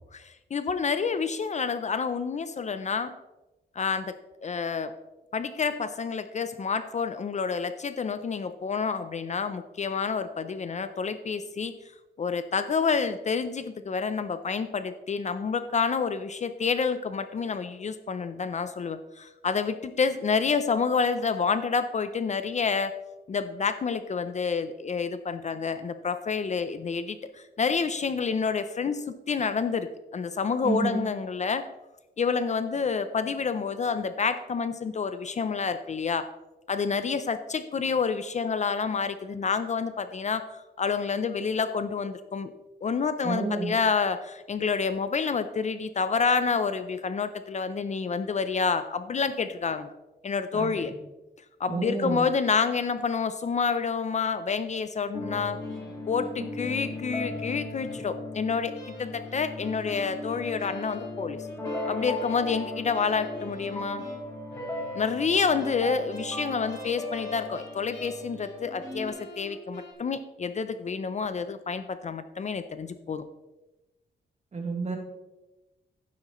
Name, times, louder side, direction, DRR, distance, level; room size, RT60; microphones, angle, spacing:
voice 1, 0.1-3.1 3.8-4.9 5.3-11.7 12.2-23.0 23.3-31.6 32.2-36.3 36.7-42.5 42.8-49.9 50.2-50.9 51.6-55.6 56.1-58.7 59.0-61.5 61.9-64.0 64.9-73.2, left 5 dB, 40° left, 11 dB, 0.5 m, -28 dB
voice 2, 30.6-31.0 43.2-43.7 50.5-51.0 51.7-52.3 74.5-75.0, right 3 dB, 40° right, 2 dB, 1.9 m, -30 dB
sound 1, 55.1-69.1, left 1 dB, 15° left, 2.1 m, -37 dB
sound 2, 55.6-58.3 58.7-65.3 65.6-68.6 68.8-69.9, left 1 dB, 70° left, 3.3 m, -46 dB
11.5 x 9.7 x 3.1 m, 1.0 s
wide cardioid pair, 135°, 19 cm